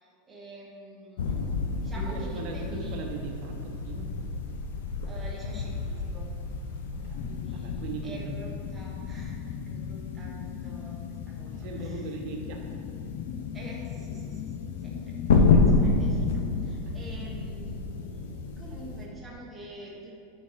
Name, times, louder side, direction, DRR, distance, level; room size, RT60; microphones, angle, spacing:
voice 1, 0.0-1.4 1.8-3.0 5.1-6.3 7.2-12.0 13.5-20.1, right 1 dB, 10° right, -3 dB, 1.1 m, -47 dB
sound 1, 1.2-19.1, left 4 dB, 75° left, 0.9 m, -30 dB
voice 2, 2.0-4.1 6.9-8.3 11.5-12.7 15.5-15.7 16.8-17.0, right 4 dB, 40° right, 1 dB, 1.1 m, -39 dB
sound 2, 7.1-16.7, left 8 dB, 35° left, 0.3 m, -38 dB
9.4 x 4.4 x 5.7 m, 2.5 s
supercardioid pair, 180°, 0 cm